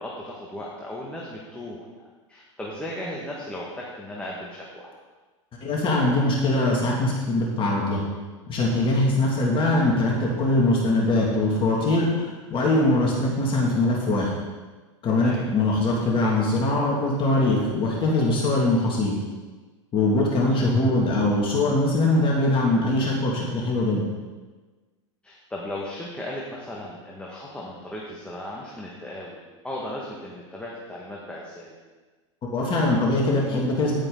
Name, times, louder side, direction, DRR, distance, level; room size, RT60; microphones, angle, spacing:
voice 1, 0.0-1.9 2.3-4.9 15.2-15.4 20.4-20.9 25.2-29.4 29.6-31.7, left 1 dB, 5° left, -4 dB, 1.9 m, -36 dB
voice 2, 5.6-8.0 8.5-14.3 15.0-19.2 19.9-24.0 32.5-33.9, left 2 dB, 30° left, -3 dB, 2.6 m, -22 dB
11.0 x 8.9 x 4.1 m, 1.3 s
hypercardioid pair, 100°, 16 cm